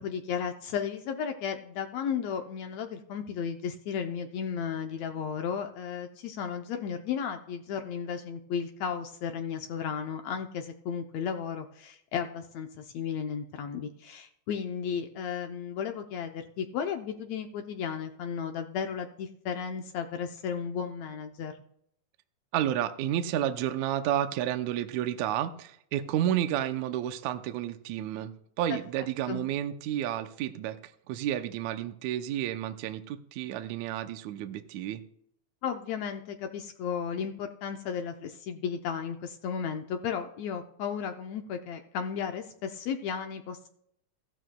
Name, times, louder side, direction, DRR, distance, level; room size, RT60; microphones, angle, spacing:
voice 1, 0.0-21.5 29.3-29.4 35.6-43.7, left 7 dB, 75° left, 5 dB, 1.6 m, -34 dB
voice 2, 22.5-35.0, right 11 dB, 80° right, 9 dB, 1.8 m, -31 dB
15.0 x 12.5 x 2.2 m, 0.71 s
omnidirectional pair, 3.7 m